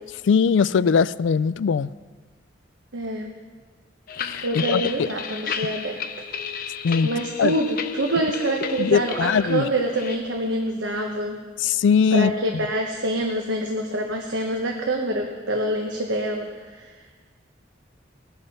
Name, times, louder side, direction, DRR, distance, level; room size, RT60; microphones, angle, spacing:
voice 1, 0.2-1.9 4.2-4.8 6.8-7.1 7.4-7.5 8.8-9.7 11.6-12.3, left 6 dB, 85° left, 18 dB, 0.4 m, -20 dB
voice 2, 2.9-3.3 4.4-6.1 6.6-6.8 7.0-11.4 12.1-16.9, right 1 dB, 90° right, 1 dB, 1.2 m, -26 dB
sound 1, 4.1-10.2, left 6 dB, 50° left, 0.7 m, -33 dB
21.0 x 7.0 x 5.5 m, 1.4 s
head